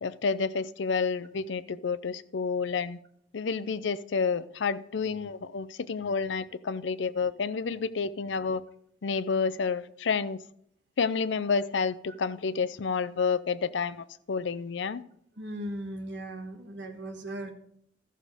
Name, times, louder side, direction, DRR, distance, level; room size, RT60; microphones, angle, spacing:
voice 1, 0.0-3.0 3.3-8.6 9.0-10.4 11.0-15.0, left 5 dB, 75° left, 16 dB, 0.5 m, -29 dB
voice 2, 15.4-17.5, right 1 dB, 65° right, 4 dB, 1.4 m, -38 dB
13.5 x 6.6 x 4.9 m, 0.70 s
head